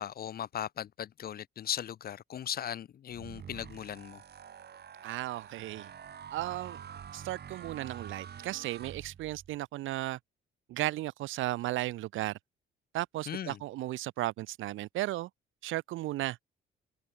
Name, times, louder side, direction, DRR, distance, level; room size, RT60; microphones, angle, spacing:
voice 1, 0.0-4.2 13.3-13.6, left 10 dB, 50° left, 0.6 m, -38 dB
sound 1, 3.1-9.6, right 8 dB, 55° right, 4.9 m, -47 dB
voice 2, 5.0-5.9 6.3-6.8 7.1-10.2 10.7-12.4 12.9-15.3 15.6-16.4, right 16 dB, 85° right, 0.9 m, -35 dB
cardioid pair, 90°, 20 cm